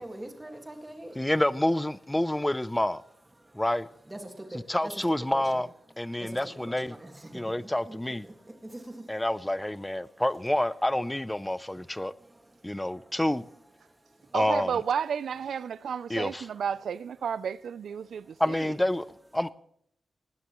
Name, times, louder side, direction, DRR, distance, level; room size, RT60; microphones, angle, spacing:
voice 1, 0.0-1.3 3.4-5.6 6.1-10.2 11.5-13.2 13.5-14.4 16.2-16.7 18.0-18.4, right 1 dB, 15° right, 1.9 m, -46 dB
voice 2, 1.2-3.0 3.5-3.9 4.7-5.7 6.0-6.9 7.3-8.3 9.1-12.1 12.6-13.4 14.3-14.8 16.1-16.5 18.4-19.1 19.3-19.5, left 1 dB, 10° left, 0.4 m, -28 dB
voice 3, 14.3-18.7, right 7 dB, 80° right, 0.5 m, -32 dB
20.0 x 16.5 x 3.1 m
wide cardioid pair, 150°, 0 cm